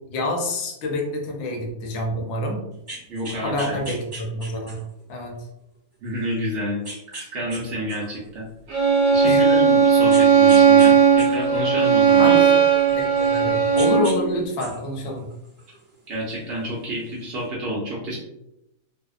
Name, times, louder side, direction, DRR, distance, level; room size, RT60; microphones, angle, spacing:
voice 1, 0.1-2.6 3.4-4.8 5.1-5.3 9.2-9.4 12.2-12.6 13.0-15.3, left 1 dB, 70° left, 1 dB, 0.7 m, -27 dB
sound 1, 2.7-5.0 5.6-5.7 6.8-7.6 7.9-9.2 10.1-10.9 11.2-13.4 13.7-14.2 14.5-15.9 16.9-17.0, right 1 dB, 25° right, 1.0 m, -38 dB
voice 2, 3.1-3.8 6.0-6.8 7.1-8.5 9.1-12.4 16.1-18.2, equal, 75° right, -5 dB, 0.5 m, -29 dB
Bowed string instrument, 8.7-14.2, right 6 dB, 60° right, 1.0 m, -16 dB
2.7 x 2.0 x 2.3 m, 0.86 s
omnidirectional pair, 1.8 m